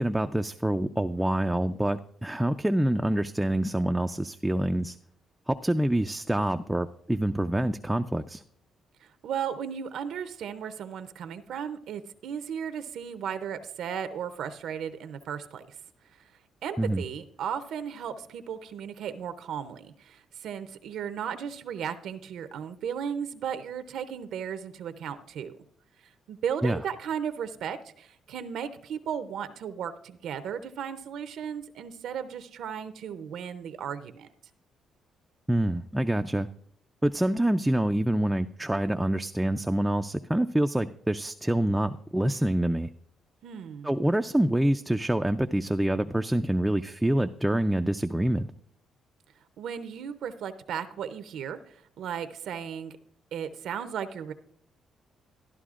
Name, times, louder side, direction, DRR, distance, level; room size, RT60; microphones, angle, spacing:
voice 1, 0.0-5.0 5.5-8.4 16.8-17.0 26.6-26.8 35.5-36.5 37.0-42.9 43.8-48.5, right 1 dB, 5° right, 7 dB, 0.3 m, -26 dB
voice 2, 9.0-15.8 16.6-25.6 26.0-34.3 43.4-43.9 49.6-53.0 53.3-54.3, right 8 dB, 75° right, 10 dB, 0.5 m, -35 dB
13.0 x 11.0 x 2.4 m, 0.67 s
cardioid pair, 90°, 0 cm